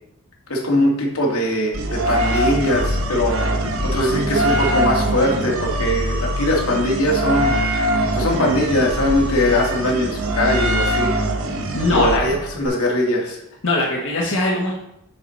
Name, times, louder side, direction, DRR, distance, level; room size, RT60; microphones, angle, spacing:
voice 1, 0.5-3.4 3.8-7.5 8.1-11.1 11.9-13.4, left 1 dB, 85° left, -1 dB, 2.1 m, -21 dB
sound 1, 1.7-12.7, right 1 dB, 70° right, 1.0 m, -22 dB
voice 2, 11.7-12.2 13.6-14.7, left 2 dB, 60° left, -3 dB, 1.1 m, -20 dB
9.7 x 4.6 x 4.1 m, 0.83 s
head